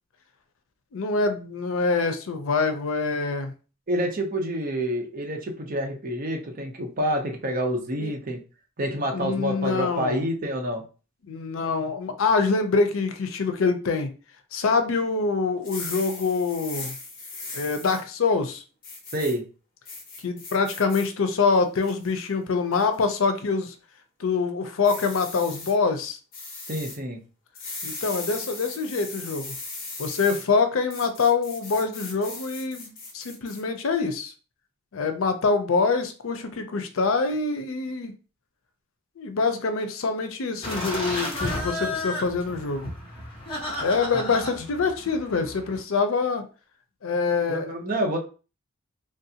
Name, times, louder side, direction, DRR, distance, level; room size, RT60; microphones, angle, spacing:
voice 1, 0.9-3.5 8.0-8.1 9.1-10.3 11.3-14.1 14.5-16.9 17.5-18.6 20.2-23.7 24.2-26.2 27.8-29.5 30.0-34.3 34.9-38.1 39.2-42.9 43.8-46.4 47.0-47.7, left 4 dB, 90° left, 7 dB, 0.5 m, -25 dB
voice 2, 3.9-8.4 8.8-10.8 19.1-19.4 26.7-27.2 44.1-44.2 47.5-48.2, right 1 dB, 45° right, 2 dB, 0.7 m, -28 dB
sound 1, 15.6-18.0 18.8-19.3 19.8-21.1 21.5-22.1 22.7-23.0 24.8-25.7 26.3-27.0 27.5-30.4 30.9-33.6, left 3 dB, 45° left, 1.0 m, -38 dB
sound 2, 40.6-45.8, left 1 dB, 25° left, 1.2 m, -33 dB
3.3 x 2.5 x 2.8 m, 0.35 s
head